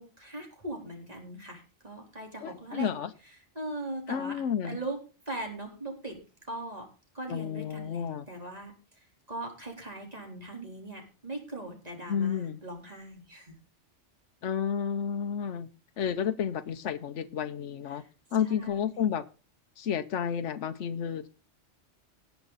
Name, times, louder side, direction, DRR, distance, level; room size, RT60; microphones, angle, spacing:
voice 1, 0.0-2.9 3.6-4.3 4.6-5.0 5.3-6.9 7.1-13.6 17.9-18.1 18.5-19.1, right 2 dB, 35° right, 1 dB, 4.0 m, -40 dB
voice 2, 2.4-3.1 4.1-4.8 7.3-8.3 12.1-12.6 14.4-15.7 16.0-18.0 18.3-19.2 19.8-21.3, left 8 dB, 80° left, 8 dB, 1.1 m, -31 dB
18.5 x 6.8 x 4.0 m, 0.34 s
omnidirectional pair, 1.2 m